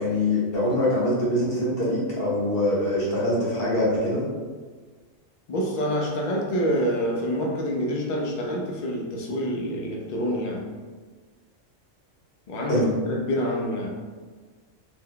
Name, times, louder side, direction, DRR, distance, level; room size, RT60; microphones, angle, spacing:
voice 1, 0.0-4.2 12.7-12.9, left 1 dB, 50° left, -6 dB, 1.1 m, -24 dB
voice 2, 5.5-10.6 12.5-14.0, equal, 75° left, -1 dB, 0.4 m, -27 dB
2.8 x 2.2 x 3.6 m, 1.4 s
omnidirectional pair, 1.4 m